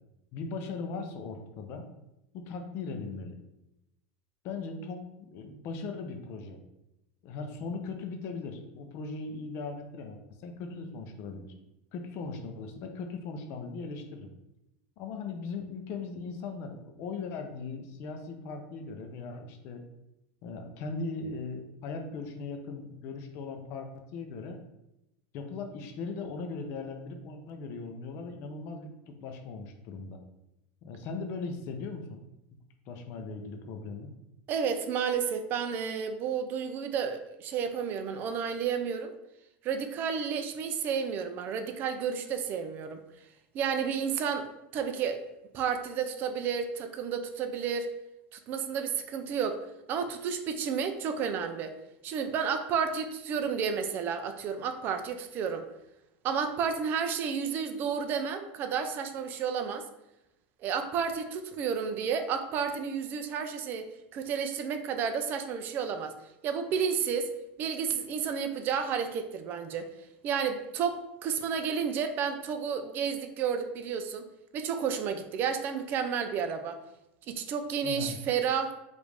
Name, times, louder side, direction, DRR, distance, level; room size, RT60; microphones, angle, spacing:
voice 1, 0.3-1.9 2.3-3.4 4.4-6.6 7.2-11.5 11.9-14.3 15.0-19.8 20.4-24.6 25.3-30.2 30.8-32.2 32.9-34.1 77.8-78.2, left 4 dB, 45° left, 5 dB, 0.6 m, -39 dB
voice 2, 34.5-39.1 39.6-43.0 43.5-45.2 45.5-47.9 48.3-49.6 49.9-51.8 52.0-55.6 56.2-59.9 60.6-66.1 66.4-67.3 67.6-69.9 70.2-74.3 74.5-76.8 77.3-78.7, right 6 dB, 35° right, 8 dB, 0.4 m, -31 dB
5.0 x 2.6 x 3.4 m, 0.90 s
supercardioid pair, 155°, 6 cm